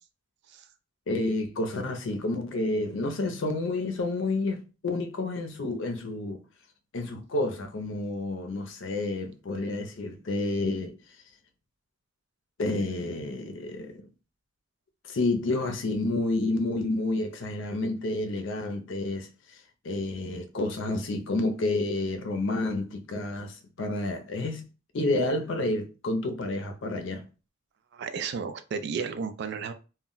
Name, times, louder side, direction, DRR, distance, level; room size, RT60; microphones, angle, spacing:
voice 1, 1.1-6.4 6.9-11.0 12.6-14.1 15.1-24.6 24.9-27.3, left 2 dB, 65° left, 0.5 m, -30 dB
voice 2, 27.9-29.7, right 5 dB, 55° right, 0.3 m, -33 dB
2.2 x 2.1 x 3.7 m
head